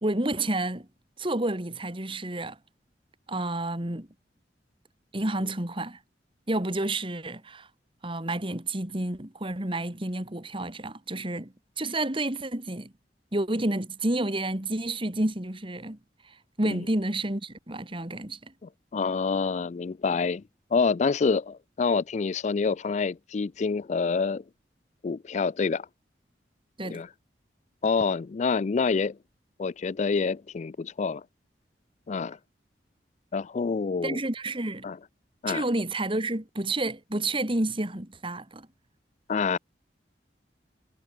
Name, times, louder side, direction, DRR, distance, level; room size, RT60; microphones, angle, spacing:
voice 1, 0.0-0.9 1.2-2.6 3.3-4.1 5.1-6.0 6.5-7.7 8.0-12.9 13.3-16.0 16.6-18.5 26.8-27.0 34.0-34.9 35.5-38.7, right 2 dB, 30° right, 2.3 m, -30 dB
voice 2, 18.6-20.4 20.7-24.4 25.0-25.9 26.8-27.1 27.8-29.2 29.6-31.2 32.1-32.4 33.3-34.2 34.8-35.0 35.4-35.6 39.3-39.6, left 5 dB, 40° left, 0.4 m, -27 dB
head